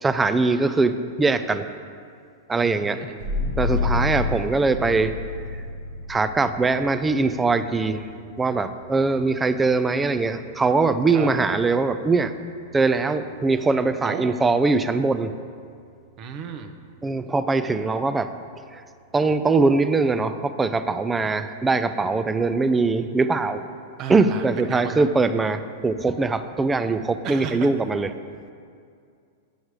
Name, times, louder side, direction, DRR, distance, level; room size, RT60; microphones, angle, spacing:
voice 1, 0.0-1.7 2.5-3.1 3.6-5.2 6.1-8.1 8.4-12.3 12.7-15.3 17.0-18.3 18.7-18.8 19.1-23.6 24.1-28.1, right 3 dB, 15° right, 11 dB, 0.4 m, -22 dB
voice 2, 2.6-3.2 3.8-4.1 11.1-11.3 14.0-14.3 16.2-16.7 24.0-25.0 27.2-27.7, right 7 dB, 40° right, 6 dB, 0.7 m, -34 dB
sound 1, 3.2-14.4, left 3 dB, 85° right, 1.7 m, -32 dB
8.6 x 6.4 x 4.7 m, 2.3 s
hypercardioid pair, 115°, 0 cm